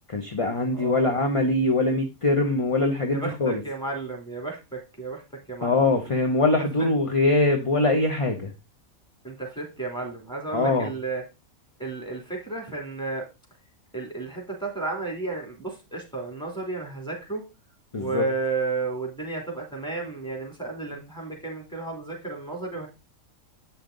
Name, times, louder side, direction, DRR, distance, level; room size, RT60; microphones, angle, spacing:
voice 1, 0.1-3.6 5.6-8.5 10.5-10.9 17.9-18.2, left 2 dB, 30° left, 3 dB, 0.8 m, -23 dB
voice 2, 0.7-1.1 3.1-5.2 5.5-5.7 6.8-6.9 9.2-11.2 11.8-13.3 13.9-17.4 18.0-22.9, right 3 dB, 5° left, -1 dB, 2.9 m, -32 dB
8.7 x 5.7 x 3.8 m, 0.27 s
omnidirectional pair, 1.5 m